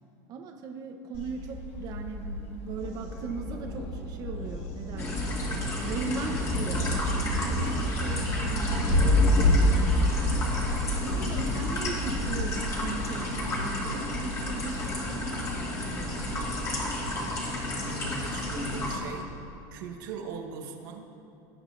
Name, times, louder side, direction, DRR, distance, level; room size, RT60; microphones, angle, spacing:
voice 1, 0.3-5.3 5.8-10.4 11.0-16.3, right 5 dB, 40° right, 3 dB, 0.8 m, -38 dB
Thunder, 1.1-19.2, left 1 dB, 60° left, 1.7 m, -30 dB
sound 1, 5.0-19.0, left 1 dB, 30° left, 2.2 m, -33 dB
voice 2, 17.8-19.3 19.7-21.1, right 5 dB, 85° right, 2 dB, 1.2 m, -39 dB
18.5 x 8.7 x 2.6 m, 2.7 s
supercardioid pair, 140°, 10 cm